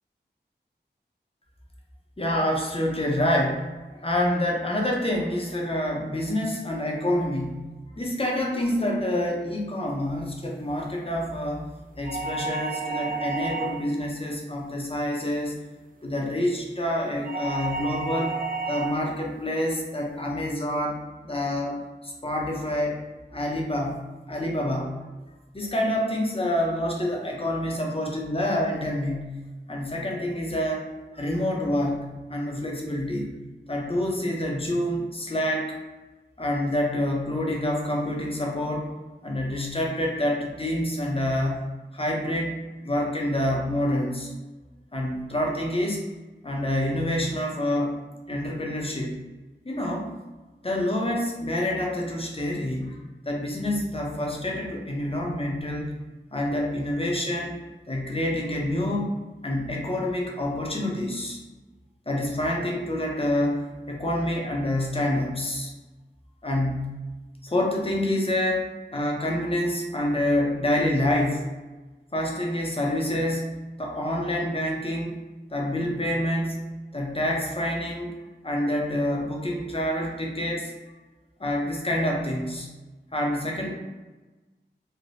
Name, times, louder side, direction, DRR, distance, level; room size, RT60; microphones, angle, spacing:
voice 1, 2.2-3.7 4.0-7.7 7.9-11.7 12.0-15.6 16.0-18.4 18.7-23.0 23.3-24.0 24.3-25.0 25.5-29.4 29.7-30.9 31.1-33.3 33.7-35.7 36.4-38.9 39.2-41.6 41.9-44.3 44.9-46.0 46.4-48.0 48.3-49.1 49.6-50.1 50.6-52.9 53.3-56.0 56.3-57.6 57.9-59.1 59.4-61.4 62.1-65.7 66.4-67.0 67.4-71.4 72.1-73.5 73.8-75.1 75.5-76.7 76.9-78.1 78.4-80.7 81.4-82.7 83.1-83.7, left 1 dB, 30° left, -1 dB, 0.6 m, -27 dB
sound 1, 12.0-14.0 17.2-19.1, right 3 dB, 45° right, 0.4 m, -31 dB
3.2 x 2.1 x 2.6 m, 1.2 s
wide cardioid pair, 55°, 19 cm